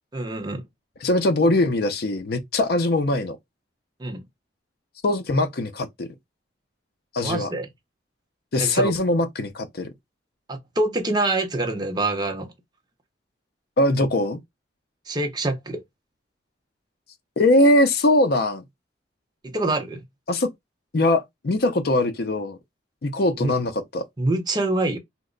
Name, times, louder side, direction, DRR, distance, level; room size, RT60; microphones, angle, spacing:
voice 1, 0.1-0.6 4.0-4.2 7.2-7.7 8.6-8.9 10.5-12.5 15.1-15.8 19.4-20.0 23.3-23.5 24.2-25.0, right 2 dB, 20° right, 0.6 m, -25 dB
voice 2, 1.0-3.4 5.0-6.1 7.1-7.5 8.5-9.9 13.8-14.4 17.4-18.6 20.3-20.5 20.9-22.6 23.0-24.0, left 1 dB, 55° left, 0.5 m, -21 dB
2.9 x 2.1 x 3.7 m
head